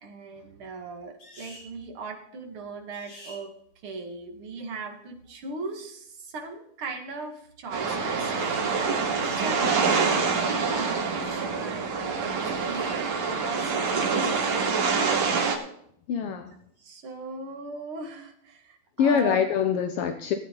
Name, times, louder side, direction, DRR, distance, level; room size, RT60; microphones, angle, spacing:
voice 1, 0.0-3.5 3.8-8.7 9.1-15.1 16.8-19.4, right 3 dB, 50° right, 3 dB, 2.6 m, -39 dB
sound 1, 1.2-1.7 2.9-3.4 8.2-8.7 9.1-9.5 12.5-13.0 14.2-14.7, equal, 45° left, 7.5 m, -47 dB
sound 2, 7.7-15.6, right 5 dB, 65° right, 3.3 m, -26 dB
voice 2, 16.1-16.6 19.0-20.3, left 7 dB, 70° left, 7 dB, 1.4 m, -24 dB
18.5 x 9.2 x 3.9 m, 0.70 s
omnidirectional pair, 3.3 m